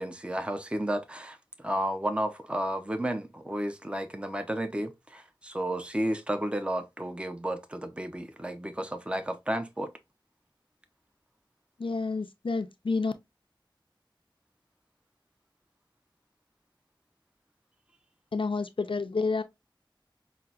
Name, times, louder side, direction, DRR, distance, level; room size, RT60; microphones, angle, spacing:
voice 1, 0.0-9.9, right 1 dB, 15° right, 0.5 m, -32 dB
voice 2, 11.8-13.1 18.3-19.4, left 4 dB, 80° left, 0.4 m, -29 dB
5.6 x 2.0 x 2.4 m
wide cardioid pair, 45°, 9 cm